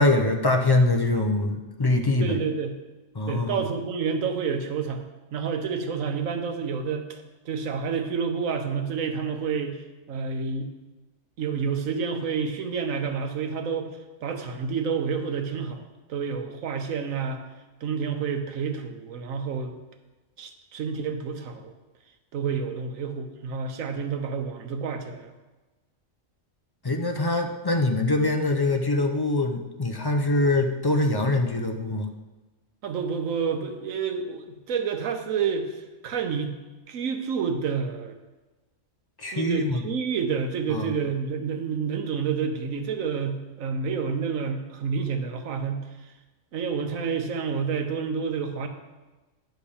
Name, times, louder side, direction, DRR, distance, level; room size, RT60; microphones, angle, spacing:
voice 1, 0.0-2.4 3.1-3.6 26.8-32.1 39.2-39.8 40.7-40.9, left 2 dB, 40° left, 4 dB, 0.3 m, -23 dB
voice 2, 2.2-2.7 3.3-9.8 10.1-10.7 11.4-13.9 14.2-17.4 17.8-19.8 20.4-21.7 22.3-25.3 32.8-35.8 36.0-36.6 36.9-38.2 39.3-45.9 46.5-48.7, right 6 dB, 90° right, 6 dB, 1.2 m, -29 dB
10.0 x 3.4 x 7.0 m, 1.2 s
omnidirectional pair, 1.3 m